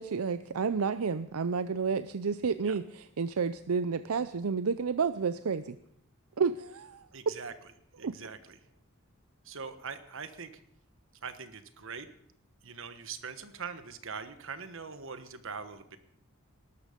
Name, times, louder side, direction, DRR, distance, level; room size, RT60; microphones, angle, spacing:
voice 1, 0.0-5.8 6.4-7.3 8.0-8.1, right 5 dB, 85° right, 12 dB, 0.6 m, -30 dB
voice 2, 7.1-7.5 8.0-8.6 9.4-10.6 11.2-12.1 12.6-16.0, right 5 dB, 65° right, 11 dB, 1.3 m, -42 dB
19.0 x 12.5 x 5.2 m, 0.71 s
head